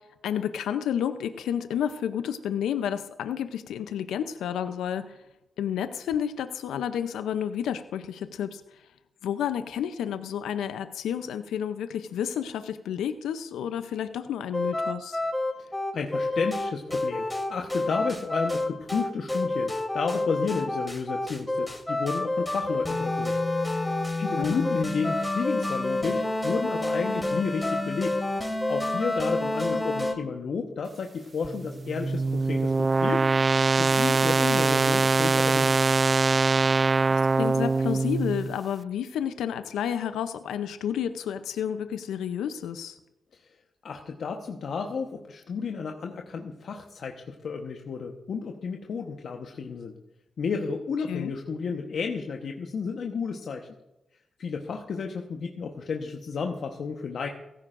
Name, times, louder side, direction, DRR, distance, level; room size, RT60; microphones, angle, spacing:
voice 1, 0.2-5.2 5.6-8.6 9.2-15.2 24.4-24.7 29.7-29.8 37.1-43.0 51.1-51.3, left 9 dB, 85° left, 10 dB, 0.6 m, -30 dB
sound 1, 14.5-30.1, left 2 dB, 15° left, 3.0 m, -28 dB
voice 2, 15.6-23.4 23.6-28.2 28.7-33.3 33.7-35.7 43.3-43.5 43.8-49.9 50.4-53.7 54.4-57.3, left 5 dB, 70° left, 3 dB, 1.1 m, -32 dB
sound 2, 31.4-38.6, right 3 dB, 45° right, 0.4 m, -23 dB
16.5 x 14.5 x 2.6 m, 0.94 s
supercardioid pair, 45°, 0 cm